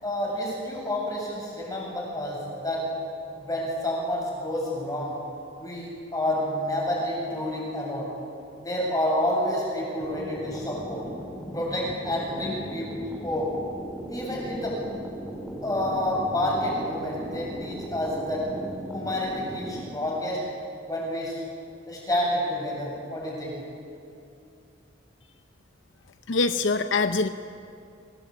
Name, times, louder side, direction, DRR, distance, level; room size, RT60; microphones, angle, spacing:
voice 1, 0.0-2.8 3.3-5.1 5.6-8.1 8.6-11.0 11.5-12.9 13.2-13.5 14.1-14.8 15.6-18.5 18.9-20.4 20.9-21.4 21.9-23.5, left 1 dB, 20° left, -3 dB, 7.8 m, -29 dB
sound 1, 10.0-19.9, equal, ahead, 2.8 m, -38 dB
voice 2, 26.3-27.3, left 3 dB, 70° left, 9 dB, 0.7 m, -23 dB
25.0 x 19.0 x 8.6 m, 2.7 s
head